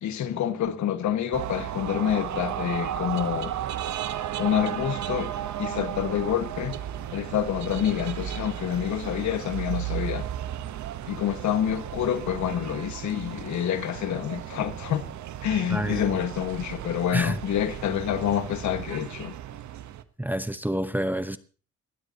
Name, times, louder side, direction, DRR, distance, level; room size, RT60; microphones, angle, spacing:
voice 1, 0.0-3.5 4.4-5.3 5.6-6.8 7.1-10.3 11.0-15.0 15.4-19.3, left 10 dB, 70° left, 1.6 m, -27 dB
sound 1, 1.3-20.0, right 11 dB, 70° right, 1.0 m, -34 dB
voice 2, 15.7-16.0 17.1-17.4 20.2-21.4, right 1 dB, 5° right, 0.9 m, -28 dB
21.0 x 16.0 x 2.9 m
cardioid pair, 90°, 30 cm